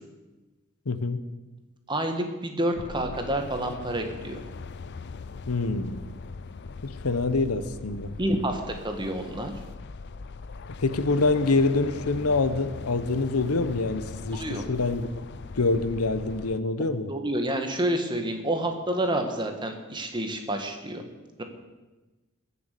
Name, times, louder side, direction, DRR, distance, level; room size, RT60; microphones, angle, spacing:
voice 1, 0.9-1.2 5.5-6.1 6.8-8.1 10.8-15.1 15.5-17.1, left 3 dB, 80° left, 12 dB, 0.9 m, -26 dB
voice 2, 1.9-4.4 8.2-9.5 14.3-14.6 17.0-21.0, right 1 dB, 20° right, 5 dB, 1.5 m, -29 dB
sound 1, 2.7-16.6, left 4 dB, 50° left, 0.5 m, -40 dB
21.0 x 7.1 x 6.7 m, 1.2 s
head